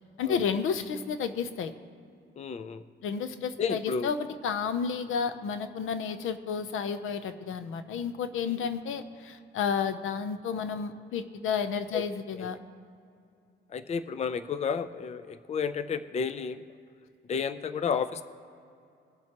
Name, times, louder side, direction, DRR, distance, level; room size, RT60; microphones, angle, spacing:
voice 1, 0.2-1.7 3.0-12.6, left 6 dB, 80° left, 10 dB, 0.7 m, -31 dB
voice 2, 2.4-2.8 3.6-4.1 11.9-12.0 12.4-12.5 13.7-16.6 17.3-18.2, left 6 dB, 35° left, 12 dB, 0.4 m, -31 dB
21.0 x 7.6 x 2.9 m, 2.5 s
cardioid pair, 110°, 21 cm